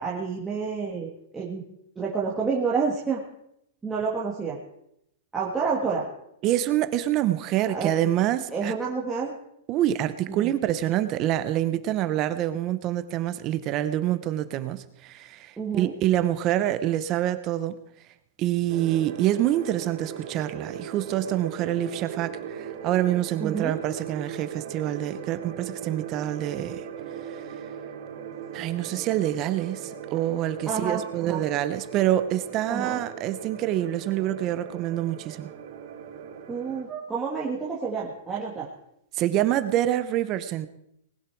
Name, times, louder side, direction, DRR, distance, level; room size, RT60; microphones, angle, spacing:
voice 1, 0.0-1.6 1.9-3.2 3.8-4.6 5.3-6.1 7.7-7.9 8.5-9.3 10.3-10.5 15.6-15.9 23.4-23.7 30.7-31.4 32.7-33.0 36.5-38.7, right 5 dB, 10° right, -5 dB, 1.6 m, -29 dB
voice 2, 6.4-8.7 9.7-17.7 18.4-26.9 27.2-27.6 28.5-35.5 39.1-40.7, right 12 dB, 25° right, 12 dB, 0.8 m, -26 dB
sound 1, 18.7-36.9, right 8 dB, 50° right, 3.1 m, -39 dB
19.5 x 11.0 x 4.6 m, 0.76 s
supercardioid pair, 170°, 0 cm